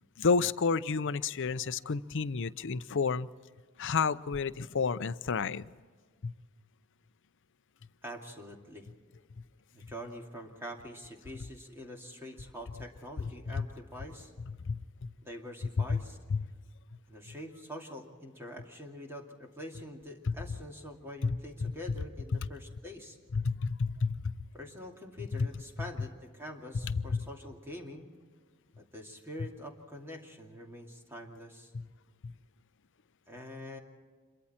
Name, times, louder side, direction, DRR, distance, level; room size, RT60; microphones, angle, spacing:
voice 1, 0.2-3.3 3.8-5.6 6.2-6.3 13.2-13.3 13.6-13.7 14.7-15.1 15.8-16.0 16.3-16.5 20.3-20.4 21.2-21.4 21.6-21.7 23.3-24.3 25.3-25.5 26.8-27.2 31.7-31.8 32.2-32.3, left 5 dB, 60° left, 15 dB, 0.6 m, -30 dB
voice 2, 8.0-8.9 9.7-14.3 15.2-16.2 17.1-23.2 24.5-28.1 28.8-31.7 33.3-33.8, equal, 10° right, 0 dB, 2.5 m, -45 dB
27.0 x 23.0 x 4.4 m, 1.5 s
head